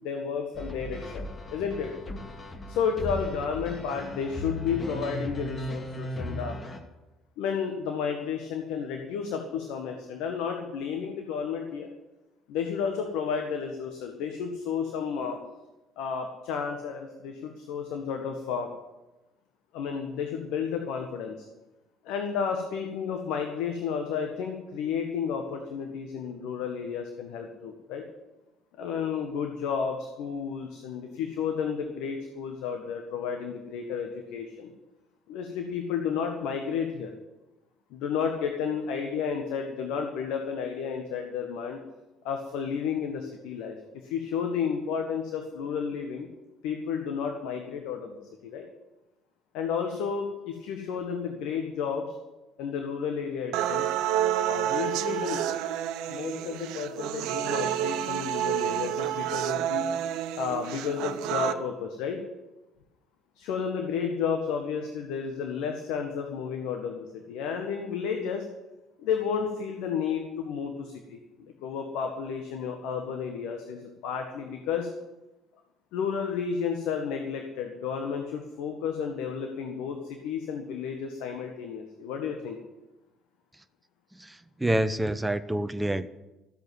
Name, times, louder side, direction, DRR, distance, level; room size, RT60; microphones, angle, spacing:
voice 1, 0.0-1.9 2.7-6.6 7.4-11.9 12.5-15.4 16.0-18.7 19.7-21.5 22.0-28.0 28.8-34.7 35.3-37.1 37.9-41.8 42.2-46.3 46.6-48.6 49.5-52.1 52.6-53.9 54.5-55.4 56.1-59.9 60.3-62.2 63.3-68.4 69.0-71.2 71.6-74.9 75.9-82.6, left 6 dB, 70° left, 4 dB, 1.6 m, -32 dB
sound 1, 0.5-6.8, left 1 dB, 35° left, 2.3 m, -37 dB
sound 2, 53.5-61.5, right 11 dB, 70° right, 0.7 m, -29 dB
voice 2, 84.1-86.1, right 1 dB, 10° right, 10 dB, 0.9 m, -28 dB
14.0 x 8.1 x 9.3 m, 1.0 s
hypercardioid pair, 55°, 0 cm